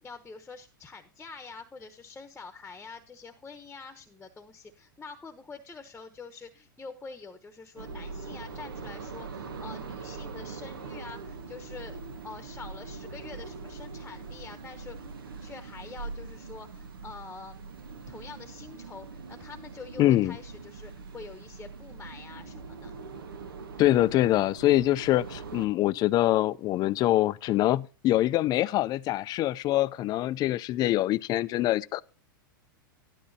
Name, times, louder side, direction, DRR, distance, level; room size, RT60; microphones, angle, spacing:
voice 1, 0.0-12.0 12.2-15.1 15.4-17.6 18.1-22.9, left 4 dB, 10° left, 1.1 m, -46 dB
sound 1, 7.8-25.7, right 4 dB, 85° right, 1.4 m, -42 dB
voice 2, 20.0-20.4 23.8-32.0, left 15 dB, 35° left, 0.5 m, -24 dB
12.5 x 12.0 x 2.8 m
hypercardioid pair, 110°, 11 cm